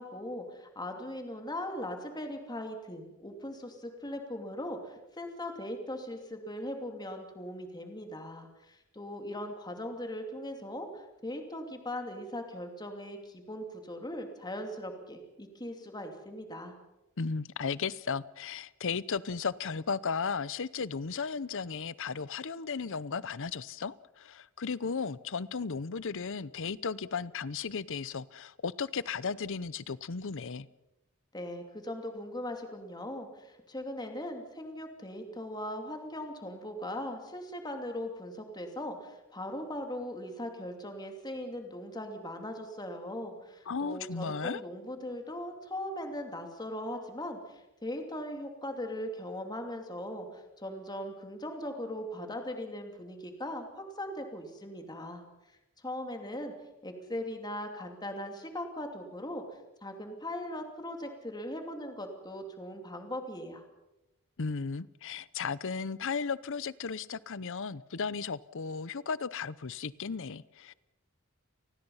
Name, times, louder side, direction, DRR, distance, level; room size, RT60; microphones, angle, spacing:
voice 1, 0.0-16.7 31.3-55.2 55.8-56.5 56.8-59.4 59.8-63.6, left 1 dB, 20° left, 4 dB, 2.8 m, -39 dB
voice 2, 17.2-30.7 43.7-44.6 64.4-70.7, left 5 dB, 60° left, 19 dB, 0.7 m, -35 dB
29.0 x 20.0 x 5.7 m, 0.94 s
head